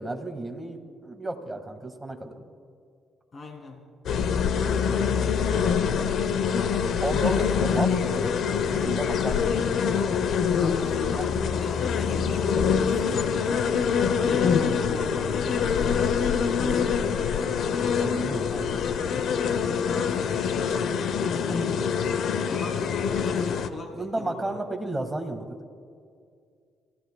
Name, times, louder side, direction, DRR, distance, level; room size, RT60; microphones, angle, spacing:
voice 1, 0.0-2.4 4.9-5.8 7.0-8.3 8.7-9.7 14.1-14.5 18.0-18.9 21.5-21.9 23.9-25.6, right 2 dB, 15° right, 5 dB, 1.7 m, -33 dB
voice 2, 3.3-3.8 10.6-13.7 14.2-17.0 19.8-20.5 22.5-24.6, left 2 dB, 40° left, 1 dB, 2.7 m, -39 dB
sound 1, 4.1-23.7, left 6 dB, 70° left, 0.8 m, -25 dB
28.0 x 16.0 x 2.3 m, 2.2 s
cardioid pair, 90°, 0 cm